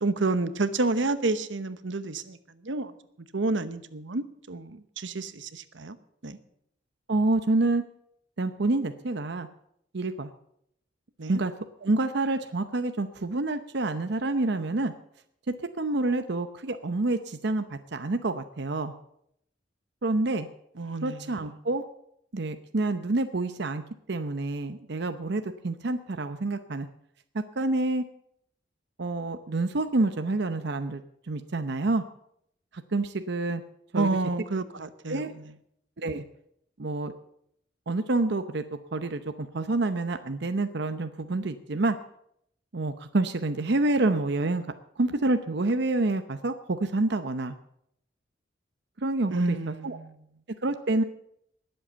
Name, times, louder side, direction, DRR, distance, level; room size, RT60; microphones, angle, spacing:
voice 1, 0.0-2.4 2.6-2.9 3.3-6.0 6.2-6.4 11.2-11.4 20.8-21.3 34.0-35.3 49.3-50.1, right 3 dB, 90° right, 12 dB, 1.0 m, -29 dB
voice 2, 7.1-7.8 8.4-9.5 9.9-10.3 11.3-11.5 11.8-14.9 15.8-18.9 20.0-20.5 21.0-21.8 22.3-23.8 24.1-26.9 27.6-28.0 29.0-31.0 31.3-32.0 32.7-33.6 33.9-34.2 35.1-35.3 36.0-36.2 36.8-37.1 37.9-38.6 38.9-42.0 42.7-44.7 45.0-47.6 49.0-50.0 50.6-51.0, right 2 dB, 65° right, 8 dB, 0.8 m, -28 dB
20.0 x 7.9 x 6.9 m, 0.73 s
head